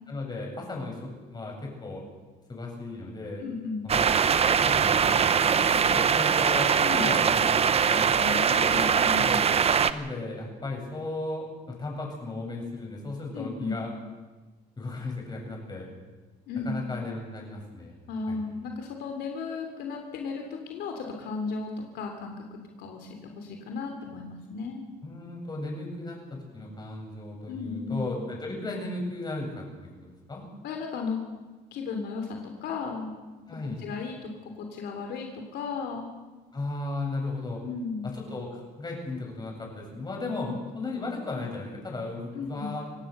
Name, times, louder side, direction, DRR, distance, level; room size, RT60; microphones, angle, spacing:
voice 1, 0.1-2.0 2.5-3.4 3.8-4.0 4.6-8.1 9.1-9.4 9.9-13.9 14.8-15.9 16.6-18.0 18.3-18.4 25.0-29.6 30.0-30.4 33.5-33.8 36.5-37.6 38.0-43.0, left 2 dB, 25° left, 0 dB, 7.9 m, -35 dB
voice 2, 3.4-3.9 6.8-7.0 7.9-9.6 13.3-13.7 16.5-16.8 18.1-24.8 27.5-28.0 30.6-31.2 31.7-33.1 33.6-36.1 37.6-38.1 42.3-42.7, left 4 dB, 75° left, 3 dB, 3.2 m, -35 dB
sound 1, 3.9-9.9, right 7 dB, 35° right, 1.0 m, -22 dB
26.0 x 17.5 x 6.8 m, 1.3 s
cardioid pair, 110°, 17 cm